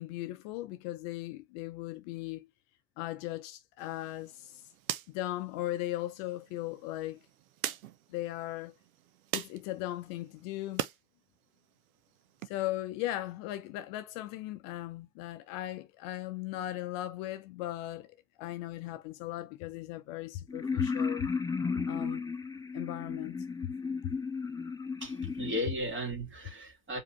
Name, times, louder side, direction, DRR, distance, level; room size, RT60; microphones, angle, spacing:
voice 1, 0.0-2.5 3.0-4.6 5.1-7.2 8.1-8.7 9.3-10.9 12.4-21.3 21.8-22.3 22.7-23.4 23.6-23.7 24.0-24.1, left 15 dB, 50° left, 0.7 m, -37 dB
sound 1, 3.8-11.0 11.4-12.5, right 12 dB, 75° right, 0.7 m, -42 dB
sound 2, 20.5-25.6, left 5 dB, 10° left, 0.7 m, -34 dB
voice 2, 25.0-27.0, equal, 25° right, 2.3 m, -35 dB
4.9 x 2.8 x 3.2 m
figure-of-eight pair, 75°, 43 cm